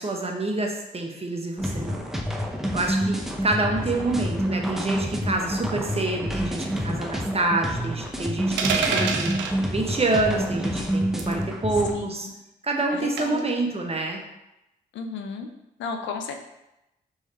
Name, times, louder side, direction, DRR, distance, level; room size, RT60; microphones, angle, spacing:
voice 1, 0.0-2.1 2.7-9.3 9.7-12.3 12.6-14.2, right 2 dB, 35° right, 1 dB, 1.0 m, -27 dB
sound 1, 1.6-11.9, equal, ahead, 0.7 m, -28 dB
sound 2, 8.6-9.6 11.2-11.4 13.2-13.5, right 5 dB, 90° right, 0.4 m, -26 dB
voice 2, 12.9-13.4 14.9-15.5 15.8-16.4, left 5 dB, 85° left, 4 dB, 0.5 m, -33 dB
3.5 x 3.2 x 4.3 m, 0.90 s
supercardioid pair, 50°, 19 cm